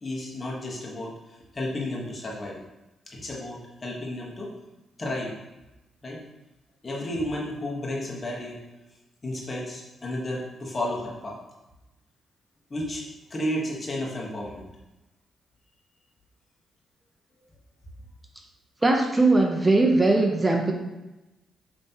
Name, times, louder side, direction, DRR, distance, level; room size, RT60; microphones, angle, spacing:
voice 1, 0.0-2.6 3.1-4.5 5.0-5.3 6.0-6.2 6.8-8.6 9.2-11.4 12.7-13.0 13.3-14.7, left 1 dB, 35° left, -3 dB, 1.3 m, -32 dB
voice 2, 18.8-20.7, right 2 dB, 25° right, 2 dB, 0.6 m, -20 dB
5.3 x 3.2 x 2.9 m, 1.0 s
supercardioid pair, 65°, 0 cm